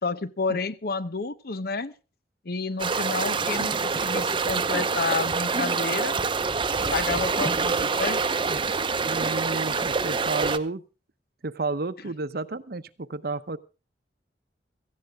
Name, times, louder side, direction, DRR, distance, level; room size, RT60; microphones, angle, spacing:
voice 1, 0.0-1.9 2.4-6.2 6.9-8.2 12.0-12.1, left 4 dB, 60° left, 15 dB, 0.9 m, -30 dB
sound 1, 2.8-10.6, right 4 dB, 30° right, 0.8 m, -26 dB
voice 2, 9.1-10.8 11.4-13.6, right 3 dB, 60° right, 14 dB, 0.8 m, -31 dB
17.0 x 14.5 x 3.6 m, 0.32 s
head